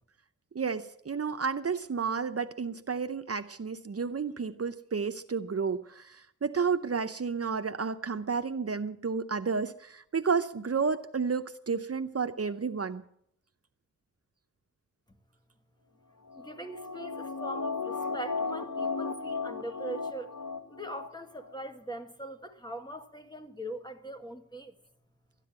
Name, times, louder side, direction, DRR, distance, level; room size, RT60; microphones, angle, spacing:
voice 1, 0.5-13.0, right 5 dB, 50° right, 0.7 m, -31 dB
sound 1, 16.3-21.1 21.4-21.5, left 4 dB, 80° left, 1.0 m, -35 dB
voice 2, 16.3-20.3 20.7-24.7, right 1 dB, 15° left, 1.7 m, -41 dB
13.5 x 10.0 x 8.7 m
wide cardioid pair, 60°, 30 cm